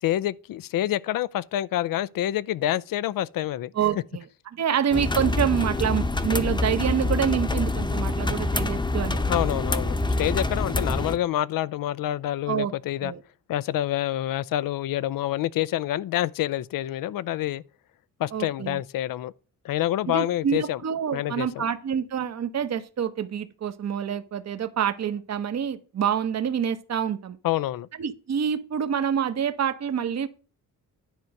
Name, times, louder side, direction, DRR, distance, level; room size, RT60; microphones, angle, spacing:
voice 1, 0.0-3.7 9.2-13.1 13.5-17.6 18.2-19.3 19.6-20.8 21.1-21.6 27.4-27.9, left 13 dB, 75° left, 0.6 m, -27 dB
voice 2, 3.7-4.2 4.5-9.3 12.5-12.7 13.0-13.2 18.3-18.8 20.1-27.4 28.0-30.3, right 8 dB, 50° right, 1.0 m, -27 dB
sound 1, 4.9-11.2, left 2 dB, 15° left, 0.9 m, -26 dB
10.5 x 4.6 x 6.4 m
cardioid pair, 95°, 34 cm